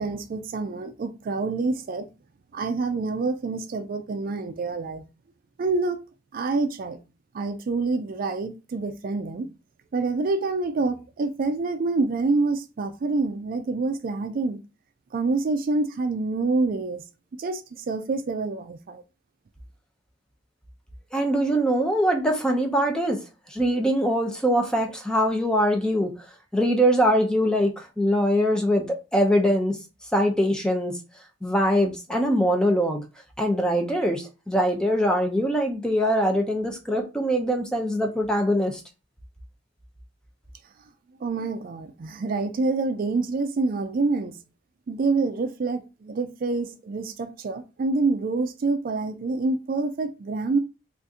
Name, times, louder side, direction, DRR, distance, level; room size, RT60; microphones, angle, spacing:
voice 1, 0.0-2.1 2.5-5.0 5.6-6.0 6.3-7.0 7.3-9.5 9.9-14.6 15.1-17.0 17.4-19.0 41.2-44.4 44.9-50.6, right 3 dB, 50° right, 0.4 m, -27 dB
voice 2, 21.1-23.2 23.5-26.1 26.5-29.8 30.1-31.0 31.4-33.0 33.4-38.8, equal, 5° left, 0.6 m, -23 dB
2.7 x 2.5 x 3.6 m
head